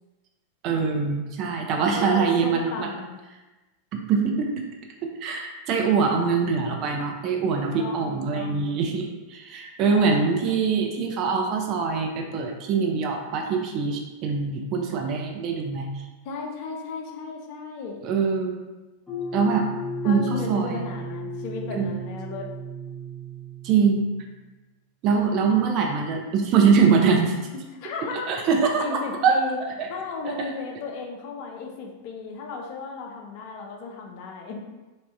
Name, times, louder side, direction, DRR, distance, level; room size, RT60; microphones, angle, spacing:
voice 1, 0.6-2.9 3.9-4.6 5.2-16.0 18.0-18.6 19.3-19.7 20.0-20.8 21.7-22.0 23.6-24.1 25.0-27.4 28.3-29.4 29.8-29.9 30.2-30.5, right 5 dB, 40° right, 2 dB, 0.4 m, -23 dB
voice 2, 1.9-3.2 7.6-8.8 9.9-10.6 16.2-18.0 20.0-22.5 27.8-28.3 28.8-29.6 29.9-34.6, left 4 dB, 45° left, 1 dB, 0.4 m, -35 dB
sound 1, 19.1-24.3, right 1 dB, ahead, 0.8 m, -35 dB
3.4 x 2.0 x 2.6 m, 1.1 s
figure-of-eight pair, 90°, 0 cm